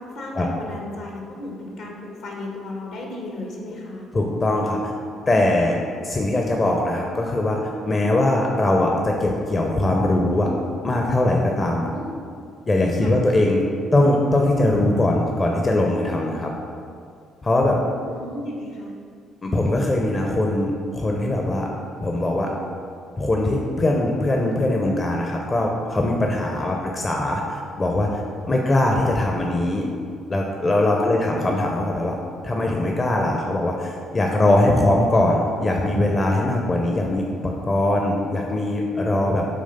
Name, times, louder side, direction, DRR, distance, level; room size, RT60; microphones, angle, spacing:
voice 1, 0.0-4.0 11.9-12.2 13.0-13.2 18.0-18.9 26.6-26.8 30.9-31.3, left 1 dB, 70° left, -1 dB, 1.2 m, -34 dB
voice 2, 4.1-4.8 5.3-5.8 6.0-7.6 7.9-10.5 10.8-11.9 12.7-13.6 13.9-16.5 17.4-17.8 19.4-21.7 22.0-22.5 23.2-28.2 28.5-29.9 30.3-32.2 32.4-39.5, left 1 dB, 35° left, 0 dB, 0.7 m, -21 dB
7.5 x 3.1 x 4.2 m, 2.3 s
hypercardioid pair, 45°, 0 cm